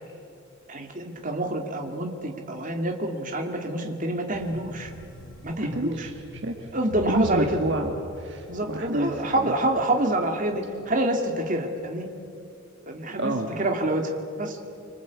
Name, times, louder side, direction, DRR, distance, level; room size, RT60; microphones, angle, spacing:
voice 1, 0.7-4.9 5.4-6.1 6.7-7.6 8.5-12.1 12.9-14.1 14.4-14.6, right 1 dB, 40° right, 3 dB, 2.4 m, -27 dB
sound 1, 4.3-11.8, equal, 90° left, 6.9 m, -44 dB
voice 2, 5.7-6.7 7.1-9.5 13.2-13.5, right 2 dB, 55° right, 3 dB, 1.6 m, -29 dB
25.5 x 25.0 x 8.4 m, 2.6 s
head